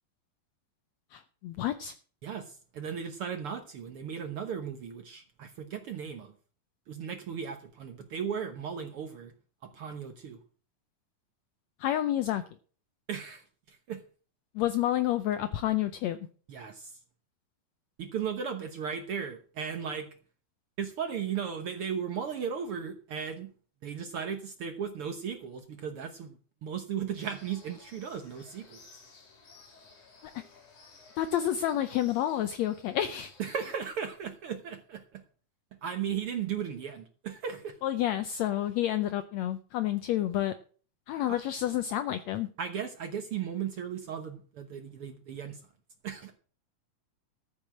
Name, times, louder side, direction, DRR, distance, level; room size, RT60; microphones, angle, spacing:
voice 1, 1.1-1.9 11.8-12.4 14.5-16.3 30.3-30.4 31.2-33.3 37.8-40.5 41.1-42.5, left 12 dB, 85° left, 12 dB, 1.5 m, -29 dB
voice 2, 2.2-6.3 6.9-9.3 9.6-10.4 13.1-14.0 16.5-17.0 18.0-20.1 20.8-23.5 23.8-28.8 33.4-35.2 35.8-37.8 41.3-41.4 42.6-45.6 46.0-46.3, right 7 dB, 65° right, 7 dB, 1.4 m, -36 dB
sound 1, 27.2-33.7, left 4 dB, 60° left, 4.8 m, -56 dB
14.0 x 6.6 x 7.5 m, 0.43 s
omnidirectional pair, 3.9 m